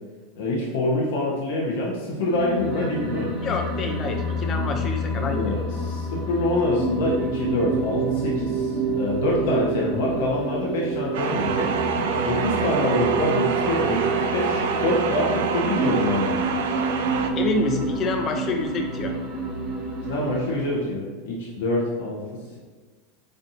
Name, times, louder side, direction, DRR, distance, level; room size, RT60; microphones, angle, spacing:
voice 1, 0.4-3.3 5.2-11.7 12.2-16.4 20.1-22.6, left 1 dB, 70° left, -4 dB, 1.0 m, -26 dB
sound 1, 2.2-20.9, right 2 dB, 20° right, 0.9 m, -28 dB
voice 2, 3.4-5.5 17.4-19.1, left 3 dB, 30° left, 4 dB, 0.5 m, -27 dB
sound 2, 11.1-17.3, right 6 dB, 75° right, 0.4 m, -27 dB
4.2 x 3.3 x 2.6 m, 1.4 s
supercardioid pair, 140°, 0 cm